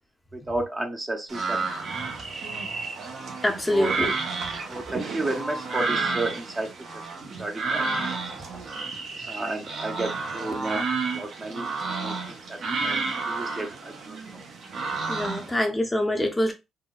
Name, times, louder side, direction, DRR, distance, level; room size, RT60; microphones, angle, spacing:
voice 1, 0.3-1.6 3.7-3.9 4.7-7.8 8.3-8.6 9.2-10.8 11.1-13.0 13.3-14.5, right 2 dB, 25° right, 0.7 m, -32 dB
sound 1, 1.3-15.6, right 4 dB, 60° right, 0.9 m, -31 dB
voice 2, 3.4-4.1 15.1-16.5, left 1 dB, 15° left, 0.6 m, -25 dB
3.7 x 2.2 x 2.3 m
cardioid pair, 90°, 0 cm